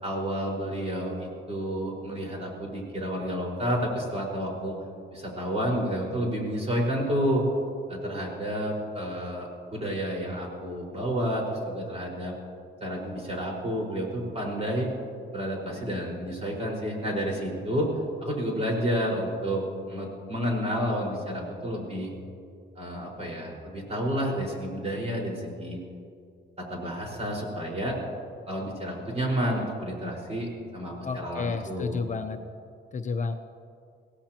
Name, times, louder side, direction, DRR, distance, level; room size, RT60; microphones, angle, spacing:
voice 1, 0.0-4.8 5.1-7.4 7.9-12.3 12.8-14.9 15.3-17.9 18.2-22.1 22.7-25.8 26.6-28.0 28.5-32.1, equal, 30° right, -2 dB, 4.9 m, -30 dB
voice 2, 31.0-32.4 32.9-33.3, left 4 dB, 40° left, 6 dB, 0.8 m, -31 dB
22.0 x 17.0 x 3.0 m, 2.3 s
cardioid pair, 90°, 20 cm